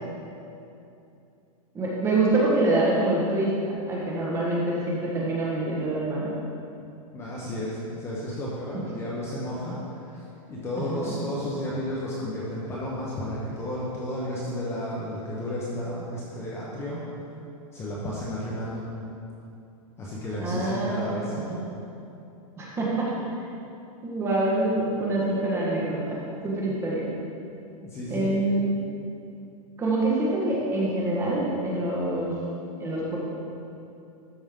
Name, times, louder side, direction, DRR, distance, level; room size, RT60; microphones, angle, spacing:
voice 1, 1.7-6.3 10.8-11.1 20.4-21.6 22.6-23.1 24.0-27.1 28.1-28.6 29.8-32.3 32.8-33.2, right 2 dB, 15° right, -5 dB, 1.3 m, -26 dB
voice 2, 7.1-17.1 17.7-18.9 20.0-21.4 27.8-28.4, left 1 dB, 15° left, -6 dB, 0.9 m, -32 dB
12.5 x 5.2 x 3.7 m, 2.7 s
supercardioid pair, 165°, 19 cm